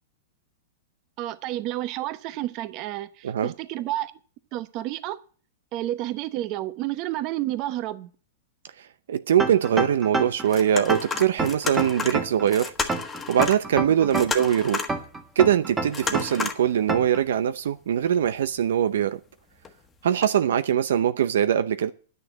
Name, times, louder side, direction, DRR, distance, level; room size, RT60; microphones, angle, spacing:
voice 1, 1.2-4.1 4.5-5.2 5.7-8.1 14.0-14.1, right 14 dB, 40° right, 0.9 m, -30 dB
voice 2, 9.1-12.7 13.3-14.8 15.4-19.2 20.0-21.9, right 9 dB, 80° right, 0.6 m, -22 dB
sound 1, 9.4-10.5 10.9-12.5 12.9-14.5 14.9-16.5 16.9-17.2, right 3 dB, 15° right, 1.7 m, -27 dB
sound 2, 10.4-13.6 13.9-15.0 15.9-16.7 17.1-17.2 18.2-18.6 19.6-19.7 20.2-20.3, left 5 dB, 15° left, 1.4 m, -32 dB
10.0 x 6.6 x 9.1 m
hypercardioid pair, 140°, 0 cm